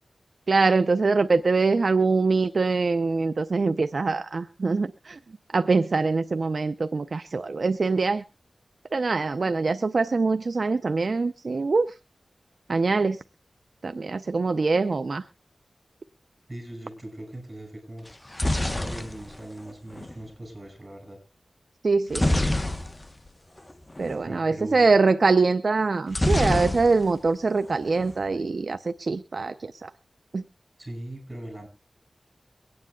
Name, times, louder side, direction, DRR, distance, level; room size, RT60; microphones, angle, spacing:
voice 1, 0.5-5.2 5.5-8.2 8.9-11.9 12.7-13.2 13.8-15.2 21.8-22.4 24.0-29.9 30.3-30.4, right 4 dB, 65° right, 10 dB, 0.5 m, -23 dB
voice 2, 16.5-18.1 18.8-21.2 24.2-24.9 30.8-31.7, right 1 dB, 25° right, 5 dB, 6.2 m, -39 dB
sound 1, 18.1-20.2 22.1-23.3 23.6-23.7 24.0-24.2 26.1-27.3 27.6-28.2, left 1 dB, 25° left, 1.0 m, -26 dB
23.5 x 9.6 x 2.3 m, 0.28 s
wide cardioid pair, 55°, 0 cm